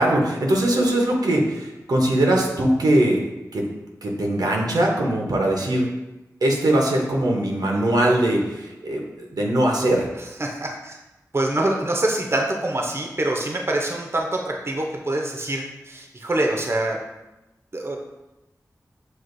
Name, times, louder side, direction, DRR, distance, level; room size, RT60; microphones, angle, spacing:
voice 1, 0.0-3.2 3.5-3.7 4.0-5.9 6.4-10.1, right 1 dB, 80° right, -1 dB, 0.7 m, -21 dB
voice 2, 10.4-11.0 11.3-17.0 17.7-18.0, right 1 dB, 40° right, 1 dB, 0.6 m, -25 dB
6.1 x 2.4 x 2.5 m, 0.96 s
cardioid pair, 40°, 7 cm